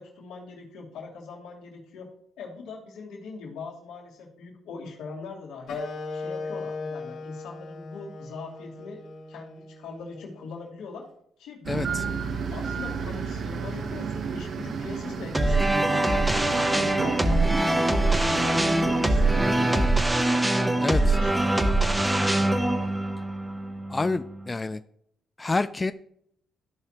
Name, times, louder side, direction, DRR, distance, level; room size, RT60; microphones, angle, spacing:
voice 1, 0.0-2.1 2.4-5.8 6.1-9.0 9.3-11.1 11.4-12.1 12.5-17.6 17.9-22.8, left 4 dB, 90° left, -3 dB, 2.6 m, -41 dB
Wind instrument woodwind instrument, 5.7-10.8, left 3 dB, 75° left, 2.4 m, -38 dB
sound 1, 11.6-19.9, right 6 dB, 55° right, 0.8 m, -32 dB
voice 2, 11.7-12.0 20.8-21.2 23.9-24.8 25.4-25.9, left 3 dB, 20° left, 11 dB, 0.3 m, -28 dB
sound 2, 15.3-24.5, right 2 dB, 10° right, 0.8 m, -23 dB
14.5 x 4.9 x 2.9 m, 0.70 s
cardioid pair, 90°, 0 cm